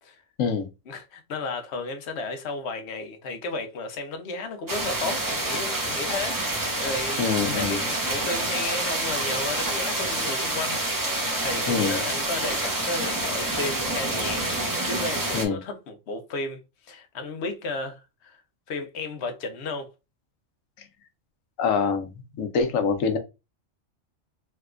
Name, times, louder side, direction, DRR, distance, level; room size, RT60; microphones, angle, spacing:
voice 1, 0.9-7.2 7.5-10.8 11.4-14.4 14.8-16.6 16.9-18.4 18.7-19.9, left 3 dB, 60° left, 0.9 m, -33 dB
sound 1, 4.7-15.5, right 2 dB, 25° right, 0.5 m, -27 dB
voice 2, 7.2-7.8 11.7-12.0 15.3-15.6 21.6-22.1 22.4-23.2, left 5 dB, 85° left, 1.1 m, -24 dB
3.4 x 2.8 x 2.4 m
omnidirectional pair, 1.3 m